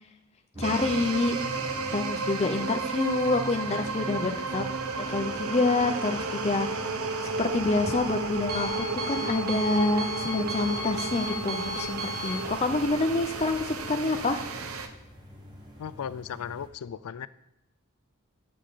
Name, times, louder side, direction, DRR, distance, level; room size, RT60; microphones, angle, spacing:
sound 1, 0.5-16.7, equal, 20° right, 1.2 m, -46 dB
voice 1, 0.6-4.7 5.0-6.8 7.2-14.4, left 2 dB, 30° left, 5 dB, 0.4 m, -27 dB
sound 2, 0.6-14.9, right 3 dB, 75° right, 0.8 m, -33 dB
Alarm, 7.1-13.5, equal, 40° right, 1.2 m, -37 dB
voice 2, 15.8-17.3, left 8 dB, 90° left, 17 dB, 0.4 m, -36 dB
8.4 x 6.5 x 3.9 m, 0.89 s
head